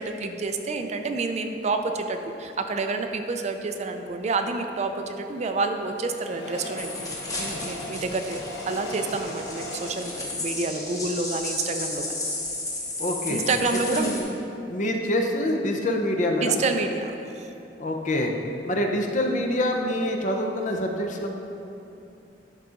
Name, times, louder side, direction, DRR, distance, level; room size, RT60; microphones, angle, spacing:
voice 1, 0.0-7.1 7.4-8.4 8.7-12.1 13.3-14.1 16.3-17.5, right 3 dB, 40° right, 6 dB, 0.4 m, -28 dB
Train, 4.8-11.9 12.4-12.5 12.7-12.8, left 1 dB, 80° left, 0.8 m, -39 dB
sound 1, 6.8-14.2, left 2 dB, 20° left, 1.0 m, -33 dB
voice 2, 13.0-13.4 13.9-14.3 14.7-16.6 17.8-18.3 18.6-21.3, left 1 dB, 45° left, 3 dB, 0.6 m, -26 dB
11.0 x 3.9 x 3.7 m, 2.9 s
head